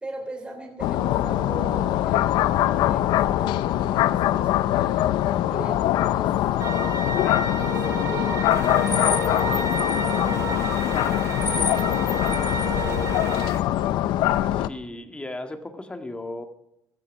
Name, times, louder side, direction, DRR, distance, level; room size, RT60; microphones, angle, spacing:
voice 1, 0.0-5.0 5.5-12.2 12.6-13.1, right 2 dB, 15° right, 2 dB, 3.5 m, -41 dB
sound 1, 0.8-14.7, left 13 dB, 90° left, 0.7 m, -23 dB
sound 2, 6.6-13.5, right 5 dB, 50° right, 2.1 m, -31 dB
sound 3, 8.5-13.6, left 5 dB, 35° left, 1.3 m, -33 dB
voice 2, 14.5-16.4, left 2 dB, 15° left, 6 dB, 1.9 m, -36 dB
16.5 x 14.0 x 5.3 m, 0.79 s
cardioid pair, 120°, 8 cm